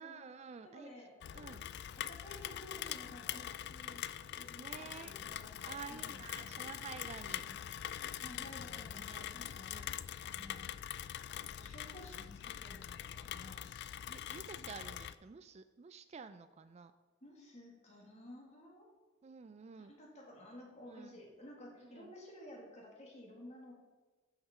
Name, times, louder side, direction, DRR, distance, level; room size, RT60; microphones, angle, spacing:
voice 1, 0.0-0.9 1.3-1.6 4.6-5.1 5.6-7.4 7.9-8.1 8.9-9.3 9.7-10.0 14.1-16.9 19.2-19.9 20.9-21.2 21.8-22.1, right 5 dB, 35° right, 11 dB, 0.3 m, -50 dB
voice 2, 0.6-1.6 2.0-6.7 7.3-7.6 8.2-9.8 10.2-10.7 11.3-13.6 14.6-14.9 17.2-18.9 19.8-23.7, left 1 dB, 35° left, -1 dB, 2.2 m, -54 dB
Rain, 1.2-15.1, left 10 dB, 55° left, 0.3 m, -44 dB
11.5 x 5.8 x 4.3 m, 1.3 s
head